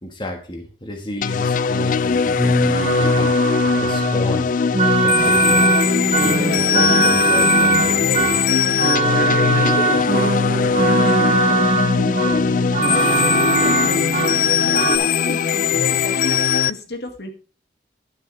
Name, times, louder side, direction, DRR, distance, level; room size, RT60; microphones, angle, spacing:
voice 1, 0.0-4.5 4.9-5.7 6.2-8.4, equal, 25° left, 2 dB, 1.5 m, -31 dB
sound 1, 1.2-16.7, left 6 dB, 45° left, 0.3 m, -20 dB
sound 2, 2.4-15.0, right 2 dB, 35° right, 1.2 m, -20 dB
voice 2, 9.3-11.7 11.9-17.3, left 1 dB, 65° left, 5 dB, 2.1 m, -33 dB
11.0 x 9.2 x 3.4 m, 0.38 s
head